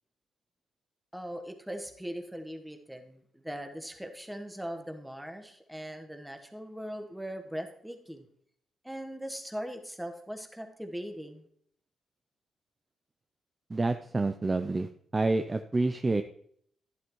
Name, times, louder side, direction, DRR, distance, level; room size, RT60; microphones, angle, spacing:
voice 1, 1.1-8.3 8.8-11.5, equal, 5° right, 5 dB, 1.2 m, -40 dB
voice 2, 13.7-16.2, right 2 dB, 25° right, 9 dB, 0.4 m, -28 dB
11.0 x 11.0 x 3.1 m, 0.66 s
cardioid pair, 110°, 0 cm